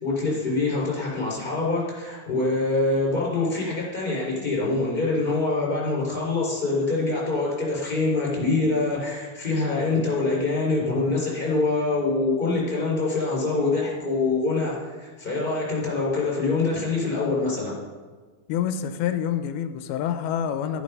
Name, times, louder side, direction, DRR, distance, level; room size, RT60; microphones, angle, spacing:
voice 1, 0.0-17.8, left 3 dB, 15° left, -5 dB, 4.8 m, -25 dB
voice 2, 18.5-20.8, left 9 dB, 85° left, 9 dB, 2.5 m, -27 dB
12.0 x 11.5 x 5.4 m, 1.4 s
omnidirectional pair, 4.4 m